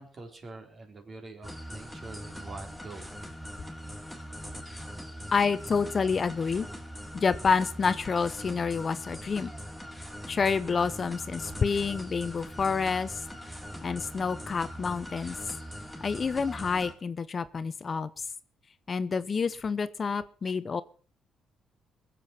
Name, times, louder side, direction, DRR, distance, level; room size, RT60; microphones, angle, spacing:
voice 1, 0.0-3.1, right 3 dB, 40° right, 5 dB, 3.8 m, -45 dB
sound 1, 1.4-16.9, equal, ahead, 3.6 m, -42 dB
voice 2, 5.3-6.7 7.1-9.5 10.3-13.2 13.8-15.4 16.0-18.2 18.9-20.8, left 5 dB, 40° left, 14 dB, 0.7 m, -28 dB
21.0 x 7.7 x 5.9 m, 0.42 s
cardioid pair, 90°, 0 cm